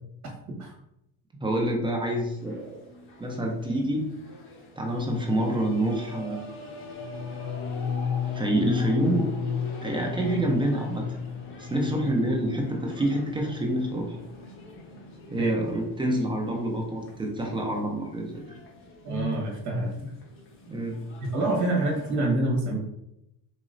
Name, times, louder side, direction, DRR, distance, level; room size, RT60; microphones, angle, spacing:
voice 1, 1.4-2.8 3.2-4.1 4.8-6.5 8.2-9.3 9.8-11.1 11.6-14.2 15.3-18.4 19.1-19.3 20.7-21.0, right 1 dB, 15° right, 0 dB, 0.4 m, -27 dB
sound 1, 2.4-22.1, left 2 dB, 35° left, 0.9 m, -44 dB
sound 2, 6.9-12.9 13.2-13.7 13.9-14.3, left 7 dB, 65° left, 0.6 m, -33 dB
voice 2, 19.0-20.1 21.3-22.8, right 2 dB, 50° right, -1 dB, 1.3 m, -26 dB
4.0 x 2.9 x 2.5 m, 0.82 s
cardioid pair, 145°, 37 cm